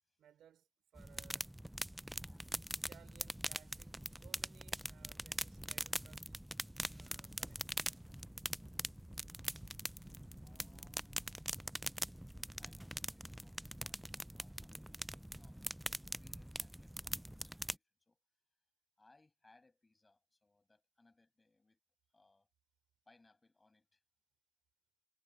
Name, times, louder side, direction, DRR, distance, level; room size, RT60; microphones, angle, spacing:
voice 1, 0.2-1.5 2.8-6.3 6.9-7.8, right 10 dB, 70° right, 4.9 m, -64 dB
sound 1, 1.0-17.8, equal, 5° right, 0.3 m, -43 dB
voice 2, 1.9-2.6 10.4-11.6 12.5-18.2 19.0-21.8 22.1-22.5 23.1-24.0, left 3 dB, 20° left, 7.1 m, -70 dB
cardioid pair, 90°, 0 cm